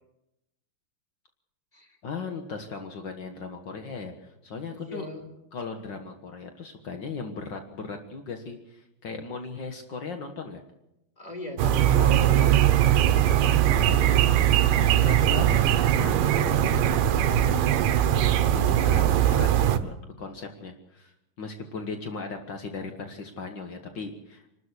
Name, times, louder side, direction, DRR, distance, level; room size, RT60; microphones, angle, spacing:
voice 1, 2.0-5.1 5.5-10.6 13.5-14.2 14.9-16.5 18.5-24.5, left 4 dB, 65° left, 5 dB, 1.1 m, -37 dB
voice 2, 4.7-5.3 11.2-13.1 14.6-15.1 17.1-17.7, left 2 dB, 10° left, 5 dB, 3.7 m, -40 dB
sound 1, 11.6-19.8, right 11 dB, 70° right, 2.5 m, -21 dB
27.0 x 13.0 x 8.2 m, 0.87 s
omnidirectional pair, 4.4 m